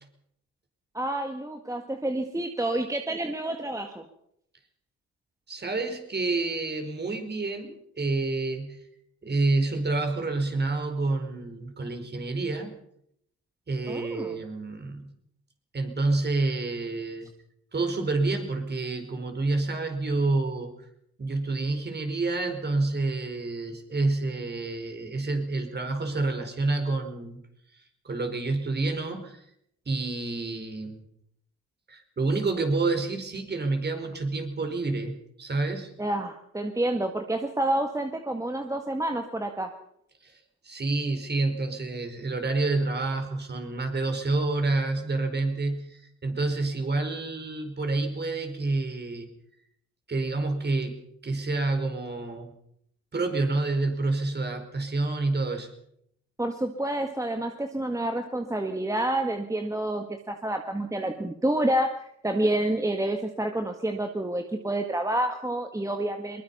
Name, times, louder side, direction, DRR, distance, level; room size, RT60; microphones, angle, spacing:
voice 1, 0.9-4.0 13.9-14.4 36.0-39.7 56.4-61.9 62.2-66.4, right 1 dB, 10° right, 5 dB, 1.7 m, -28 dB
voice 2, 5.5-8.8 9.2-12.7 13.7-15.1 15.7-17.3 17.7-20.7 21.2-27.4 28.0-29.4 29.9-31.0 31.9-35.9 40.2-49.3 50.1-52.5 53.1-55.7, right 3 dB, 35° right, 6 dB, 4.8 m, -28 dB
22.5 x 21.0 x 5.6 m, 0.73 s
cardioid pair, 90°, 30 cm